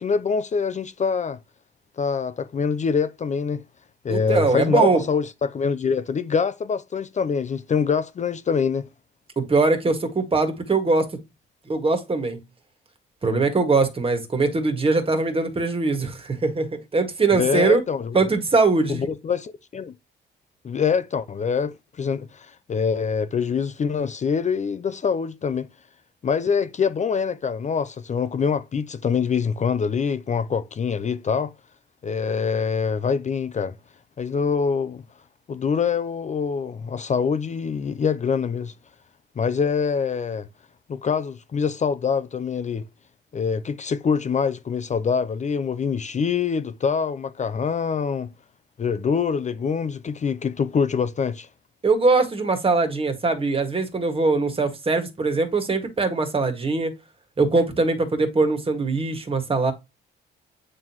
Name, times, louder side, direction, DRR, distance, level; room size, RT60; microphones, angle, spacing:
voice 1, 0.0-1.4 2.0-3.6 4.0-8.9 17.3-18.2 18.9-19.9 20.6-25.7 26.2-31.5 32.0-33.7 34.2-35.0 35.5-38.7 39.4-40.5 40.9-42.8 43.3-48.3 48.8-51.5, left 6 dB, 35° left, 0.6 m, -25 dB
voice 2, 4.1-5.0 9.3-11.1 11.7-12.4 13.2-17.8 18.1-19.1 51.8-56.9 57.4-59.7, right 3 dB, 30° right, 1.8 m, -21 dB
8.9 x 3.8 x 3.0 m
cardioid pair, 90°, 20 cm